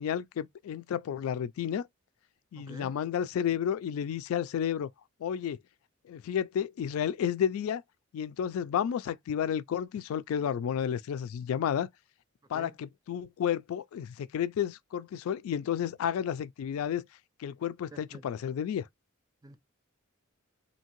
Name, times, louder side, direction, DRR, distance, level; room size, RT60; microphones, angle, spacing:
voice 1, 0.0-1.9 2.5-4.9 5.2-5.6 6.1-7.8 8.1-11.9 12.5-17.1 17.4-18.9, left 8 dB, 90° left, 0.3 m, -31 dB
voice 2, 2.5-3.0 12.5-12.8 17.9-18.2 19.4-19.6, right 2 dB, 20° right, 0.4 m, -48 dB
2.7 x 2.7 x 2.9 m
head